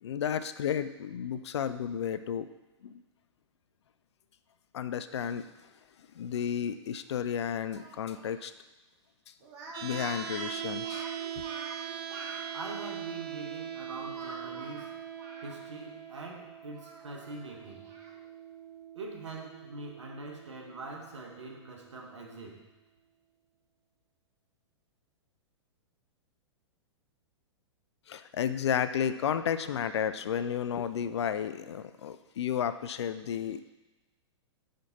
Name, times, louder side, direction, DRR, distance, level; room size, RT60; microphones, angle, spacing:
voice 1, 0.0-2.5 2.8-3.0 4.7-5.4 6.1-8.5 9.8-11.1 28.1-33.7, left 8 dB, 65° left, 12 dB, 0.4 m, -32 dB
Speech, 7.7-8.3 9.4-12.4 14.1-15.9 16.2-16.3 16.7-18.1, right 2 dB, 45° right, 1.5 m, -46 dB
sound 1, 9.7-21.8, right 9 dB, 25° right, 0.5 m, -42 dB
voice 2, 12.5-15.0 15.4-17.8 18.9-22.7, right 2 dB, 75° right, 1 dB, 1.2 m, -43 dB
5.5 x 5.1 x 4.1 m, 1.1 s
figure-of-eight pair, 105°, 15 cm